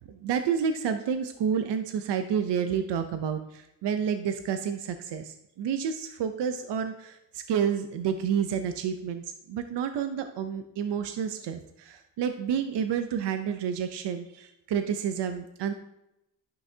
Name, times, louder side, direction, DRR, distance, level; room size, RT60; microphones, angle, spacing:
voice 1, 0.1-15.7, right 7 dB, 75° right, 8 dB, 0.7 m, -30 dB
11.0 x 5.6 x 2.8 m, 0.87 s
cardioid pair, 65°, 42 cm